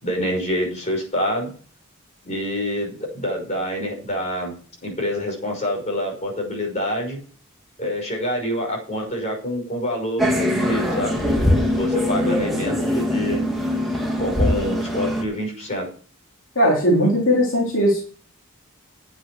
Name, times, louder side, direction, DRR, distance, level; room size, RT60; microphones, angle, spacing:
voice 1, 0.0-1.5 2.2-4.5 4.8-7.2 7.8-11.2 11.7-13.4 14.2-15.9, equal, 35° left, 0 dB, 6.0 m, -26 dB
sound 1, 10.2-15.2, left 1 dB, ahead, 2.2 m, -22 dB
voice 2, 16.5-18.0, equal, 70° left, -2 dB, 3.1 m, -18 dB
9.8 x 8.2 x 6.3 m, 0.43 s
head